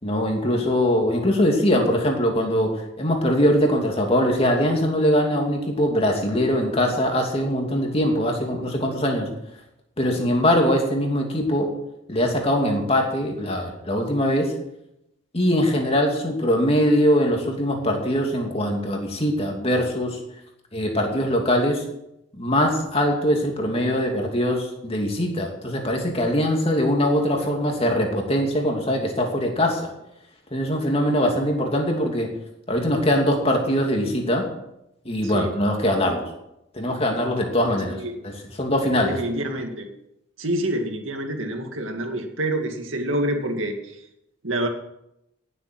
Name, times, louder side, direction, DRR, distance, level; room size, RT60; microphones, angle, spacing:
voice 1, 0.0-9.3 10.0-11.7 12.1-14.5 15.3-20.2 20.7-21.8 22.4-29.9 30.5-32.3 32.7-34.5 35.0-36.2 36.7-38.3 38.6-39.2, equal, 30° left, 1 dB, 2.7 m, -22 dB
voice 2, 35.2-35.5 37.9-38.2 39.0-39.9 40.4-44.0 44.4-44.7, right 1 dB, 90° right, 4 dB, 2.2 m, -27 dB
18.0 x 7.7 x 6.2 m, 0.83 s
head